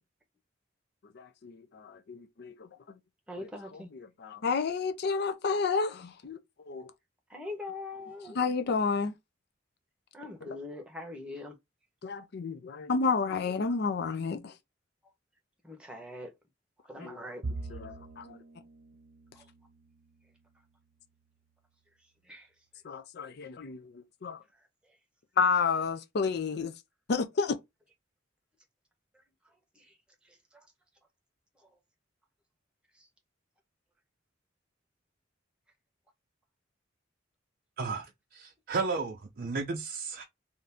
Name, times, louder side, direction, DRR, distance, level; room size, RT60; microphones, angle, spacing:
voice 1, 1.1-2.7 3.4-6.4 6.7-6.9 8.3-9.1 10.4-10.6 12.0-14.5 17.0-17.2 17.7-18.4 22.8-24.4 25.4-26.7 27.1-27.6, left 4 dB, 60° left, 0.4 m, -31 dB
voice 2, 3.3-3.9 7.3-8.4 10.1-11.5 15.7-16.3 16.9-17.4 22.3-22.4, left 2 dB, 5° right, 0.8 m, -41 dB
Bowed string instrument, 17.4-20.9, right 3 dB, 80° right, 0.9 m, -43 dB
voice 3, 38.3-40.2, right 4 dB, 50° right, 0.5 m, -33 dB
2.7 x 2.5 x 3.3 m
head